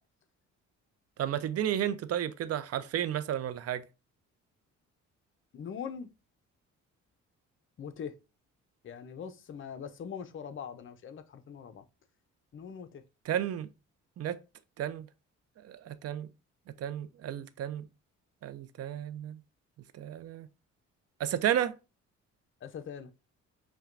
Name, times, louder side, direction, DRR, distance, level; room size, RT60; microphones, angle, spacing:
voice 1, 1.2-3.8 13.3-13.7 14.2-14.4 14.8-15.1 15.6-16.3 16.8-17.8 18.4-19.4 19.9-20.5 21.2-21.7, right 10 dB, 55° right, 0.5 m, -32 dB
voice 2, 5.5-6.1 7.8-8.2 8.8-11.8 12.5-13.0 22.6-23.1, left 7 dB, 40° left, 0.6 m, -42 dB
5.6 x 2.2 x 2.4 m
cardioid pair, 90°, 30 cm